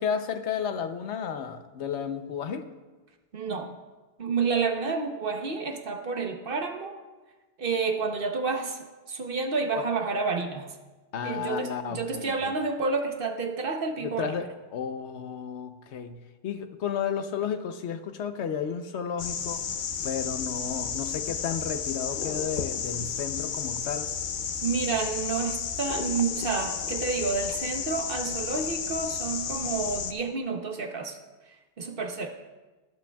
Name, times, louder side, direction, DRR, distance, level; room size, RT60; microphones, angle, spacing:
voice 1, 0.0-2.7 9.7-9.9 11.1-12.5 14.0-19.6 20.0-24.1, left 7 dB, 80° left, 8 dB, 1.0 m, -33 dB
voice 2, 3.3-3.7 4.2-6.9 7.6-10.7 11.2-14.3 24.6-31.2 31.8-32.4, right 4 dB, 55° right, 5 dB, 1.1 m, -29 dB
sound 1, 19.2-30.1, left 7 dB, 55° left, 0.6 m, -32 dB
21.0 x 8.6 x 2.3 m, 1.2 s
omnidirectional pair, 1.1 m